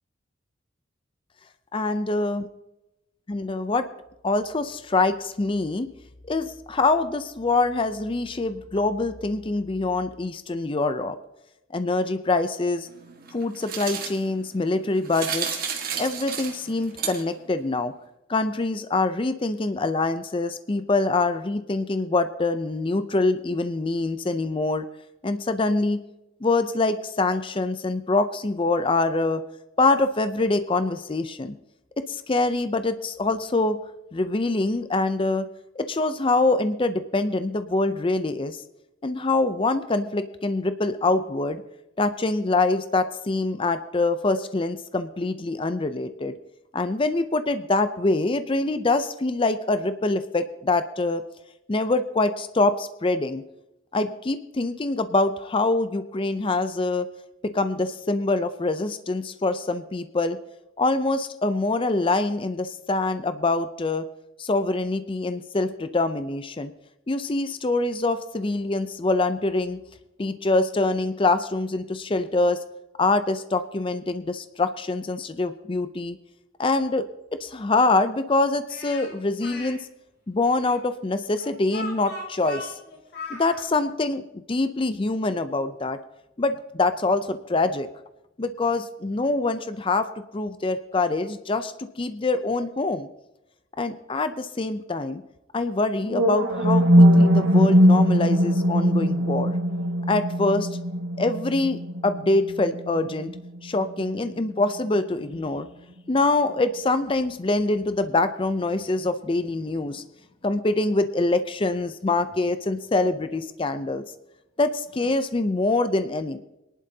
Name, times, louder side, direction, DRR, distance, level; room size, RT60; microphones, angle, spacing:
voice 1, 1.7-2.4 3.3-3.9 4.2-5.9 6.3-11.2 11.7-12.9 13.3-15.6 16.0-17.9 18.3-24.9 25.2-26.0 26.4-29.4 29.8-31.6 32.0-33.8 34.1-35.5 35.8-38.6 39.0-41.6 42.0-46.3 46.7-51.2 51.7-53.4 53.9-57.1 57.4-60.4 60.8-64.1 64.4-66.7 67.1-69.8 70.2-72.6 73.0-76.2 76.6-77.1 77.3-79.9 80.3-82.7 83.3-86.0 86.4-87.9 88.4-93.1 93.8-95.2 95.5-99.5 100.1-100.7 101.2-103.3 103.6-105.7 106.1-110.0 110.4-114.0 114.6-116.4, left 2 dB, 25° left, 11 dB, 0.5 m, -24 dB
sound 1, 12.9-17.6, right 7 dB, 45° right, 1.7 m, -33 dB
Speech, 78.7-79.7 80.6-83.6, left 2 dB, 55° left, 3.2 m, -38 dB
sound 2, 96.1-104.1, equal, 90° right, 1.8 m, -20 dB
23.0 x 11.0 x 2.8 m, 0.91 s
head